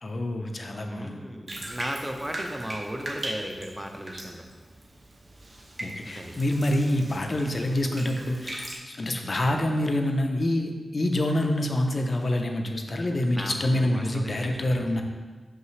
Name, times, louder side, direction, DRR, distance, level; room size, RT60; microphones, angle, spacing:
voice 1, 0.0-1.2 5.8-15.0, left 1 dB, 45° left, 3 dB, 0.5 m, -26 dB
voice 2, 0.8-4.5 6.1-6.4 13.3-15.0, equal, 10° right, 3 dB, 0.6 m, -36 dB
Bathtub (filling or washing), 1.5-8.8, right 1 dB, 45° right, 1.0 m, -39 dB
5.7 x 5.6 x 3.2 m, 1.4 s
wide cardioid pair, 100°, 0 cm